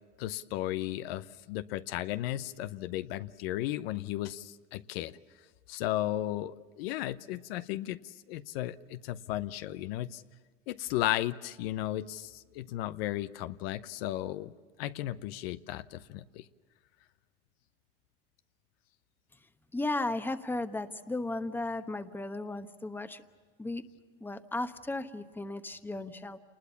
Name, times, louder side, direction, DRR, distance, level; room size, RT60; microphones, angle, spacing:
voice 1, 0.2-5.2 5.7-10.2 10.7-14.5 14.8-16.4, left 14 dB, 80° left, 13 dB, 0.8 m, -35 dB
voice 2, 19.7-23.2 23.6-23.8 24.2-26.4, left 2 dB, 5° left, 10 dB, 1.0 m, -35 dB
28.0 x 20.5 x 7.1 m, 1.5 s
supercardioid pair, 105°, 30 cm